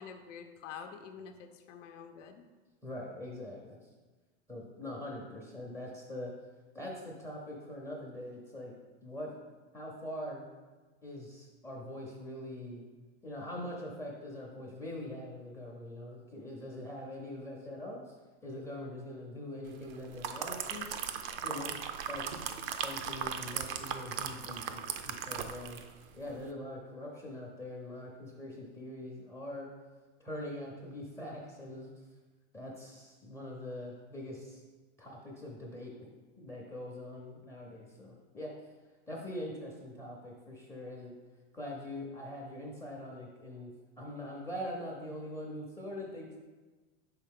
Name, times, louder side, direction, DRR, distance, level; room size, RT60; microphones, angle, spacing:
voice 1, 0.0-2.5, left 7 dB, 70° left, 6 dB, 0.7 m, -47 dB
voice 2, 2.8-3.8 4.5-6.3 6.7-8.7 9.0-9.3 9.7-10.4 11.0-12.9 13.2-18.0 18.4-20.9 21.4-21.8 22.1-22.5 22.8-25.8 26.1-29.7 30.2-31.9 32.5-34.6 35.0-35.9 36.4-38.5 39.1-41.1 41.5-46.4, left 1 dB, 10° left, -2 dB, 0.6 m, -43 dB
sound 1, 19.9-25.9 26.3-26.4, right 8 dB, 50° right, 0.5 m, -38 dB
5.7 x 4.7 x 3.6 m, 1.3 s
supercardioid pair, 140°, 37 cm